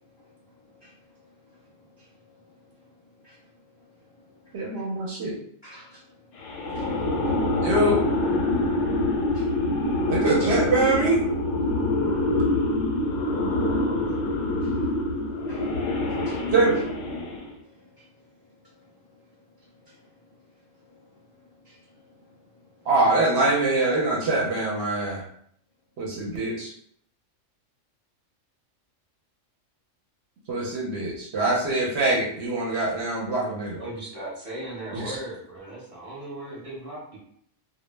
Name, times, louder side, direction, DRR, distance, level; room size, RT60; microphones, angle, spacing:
voice 1, 1.5-2.4 3.2-3.4 4.2-4.8 5.6-6.5 6.7-6.9 7.2-7.3 9.3-9.5 13.0-13.3 13.6-13.7 14.2-14.7 15.2-15.7 16.1-16.5 17.7-18.1 19.8-20.0 20.9-21.0 21.6-21.8 22.1-22.3, left 1 dB, 45° left, -7 dB, 0.3 m, -54 dB
voice 2, 4.5-5.4 7.6-8.0 10.1-11.3 16.5-16.8 22.9-25.2 26.0-26.7 30.5-33.8 35.0-35.2, right 2 dB, 65° right, -3 dB, 0.8 m, -24 dB
sound 1, 6.4-17.5, left 1 dB, 85° left, 1.0 m, -25 dB
voice 3, 33.8-37.2, right 1 dB, 30° right, -6 dB, 0.9 m, -37 dB
2.2 x 2.0 x 3.1 m, 0.65 s
omnidirectional pair, 1.3 m